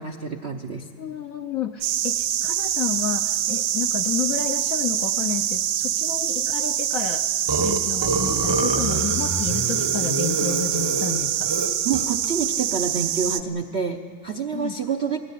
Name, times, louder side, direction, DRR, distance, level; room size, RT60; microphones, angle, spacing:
voice 1, 0.0-0.9 11.8-15.2, right 6 dB, 60° right, 5 dB, 0.7 m, -28 dB
voice 2, 1.0-7.2 7.6-11.4 14.5-14.7, left 8 dB, 65° left, 7 dB, 0.8 m, -30 dB
sound 1, 1.8-13.4, right 11 dB, 80° right, 1.5 m, -25 dB
Burping eructation, 7.5-12.2, right 2 dB, 20° right, 0.6 m, -27 dB
21.5 x 17.5 x 10.0 m, 2.1 s
omnidirectional pair, 2.2 m